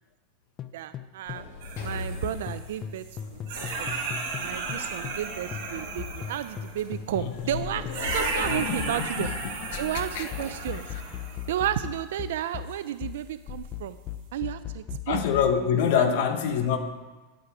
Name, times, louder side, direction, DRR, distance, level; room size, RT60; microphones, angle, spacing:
sound 1, 0.6-5.3 5.5-15.6, left 10 dB, 25° left, 0.5 m, -38 dB
voice 1, 0.7-1.4 1.8-3.0 3.3-3.9 4.4-9.3 9.8-10.8 11.5-14.0 14.3-15.3 15.9-16.2, right 12 dB, 75° right, 12 dB, 0.4 m, -32 dB
Sliding door, 1.3-11.4, left 4 dB, 80° left, 2.0 m, -40 dB
sound 2, 1.6-3.2 3.5-6.8 7.9-11.5 12.7-12.8 15.8-16.0, right 4 dB, 60° right, 3.5 m, -35 dB
voice 2, 8.4-9.3 9.9-10.2 10.7-10.8 15.1-16.8, left 8 dB, 55° left, 7 dB, 1.2 m, -26 dB
12.0 x 8.1 x 4.8 m, 1.2 s
supercardioid pair, 165°, 0 cm